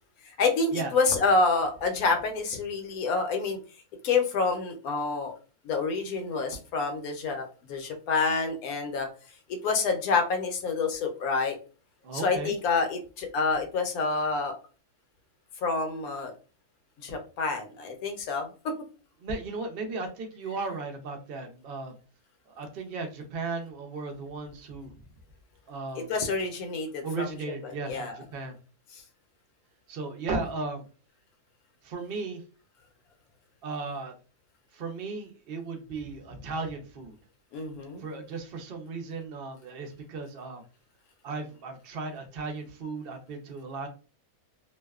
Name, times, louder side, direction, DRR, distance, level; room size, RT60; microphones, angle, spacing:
voice 1, 0.2-3.6 4.0-5.3 5.6-9.1 9.6-11.6 12.1-14.5 15.6-16.3 17.0-18.7 26.1-27.4 27.6-28.2 28.9-29.0 37.5-38.0, left 4 dB, 75° left, 4 dB, 1.0 m, -28 dB
voice 2, 12.0-12.5 19.2-21.9 22.5-24.9 25.7-26.1 27.0-28.5 29.9-30.8 31.8-32.4 33.6-34.1 34.7-37.1 38.0-40.6 41.2-43.9, right 3 dB, 65° right, 3 dB, 0.5 m, -36 dB
2.6 x 2.1 x 2.3 m, 0.36 s
omnidirectional pair, 1.6 m